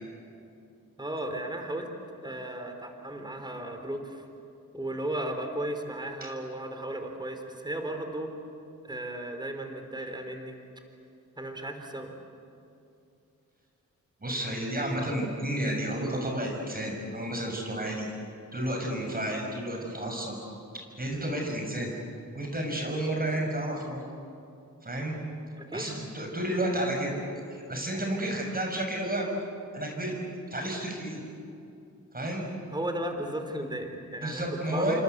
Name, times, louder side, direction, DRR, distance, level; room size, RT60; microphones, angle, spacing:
voice 1, 1.0-1.9 2.2-4.2 4.7-8.3 8.8-10.6 11.4-12.1 25.5-25.9 32.7-35.0, right 1 dB, 15° right, 5 dB, 4.0 m, -35 dB
voice 2, 14.2-18.1 18.5-20.4 21.0-21.9 22.3-24.0 24.8-25.1 25.7-27.2 27.5-29.3 29.7-30.1 30.5-31.2 32.1-32.4 34.2-35.0, right 1 dB, 30° right, 1 dB, 6.6 m, -31 dB
29.0 x 25.5 x 8.2 m, 2.6 s
cardioid pair, 85°, 31 cm